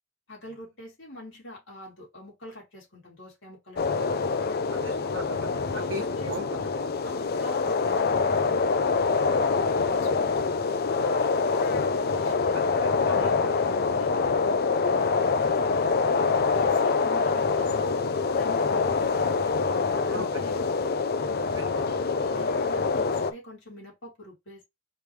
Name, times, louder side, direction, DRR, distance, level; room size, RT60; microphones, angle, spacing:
voice 1, 0.3-4.6 5.7-6.7 7.0-9.3 9.9-10.4 10.9-11.2 11.5-12.6 13.1-15.9 16.5-18.0 18.3-19.3 19.7-20.8 22.3-24.6, left 1 dB, 70° left, 3.1 m, -44 dB
sound 1, 3.8-23.3, left 4 dB, 50° left, 0.5 m, -25 dB
voice 2, 4.7-6.8 7.2-7.3 12.5-13.5 16.3-16.6 18.7-18.8 20.1-20.3 21.5-22.3, right 2 dB, 70° right, 0.8 m, -40 dB
5.0 x 3.2 x 3.3 m
head